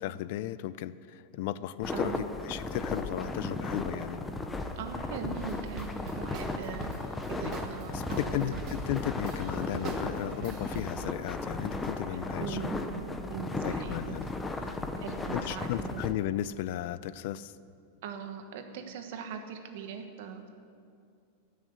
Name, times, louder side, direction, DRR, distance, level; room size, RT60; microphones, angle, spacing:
voice 1, 0.0-4.2 7.9-12.7 13.6-14.3 14.6-14.8 15.3-17.5, left 13 dB, 50° left, 16 dB, 0.3 m, -35 dB
sound 1, 1.8-16.1, left 2 dB, 10° left, 0.6 m, -35 dB
voice 2, 1.9-2.3 4.8-6.9 7.3-8.6 12.1-14.2 15.0-16.0 18.0-20.5, right 7 dB, 60° right, 6 dB, 1.2 m, -40 dB
sound 2, 5.3-10.9, right 5 dB, 35° right, 0.8 m, -44 dB
13.0 x 6.3 x 8.0 m, 2.3 s
supercardioid pair, 165°, 0 cm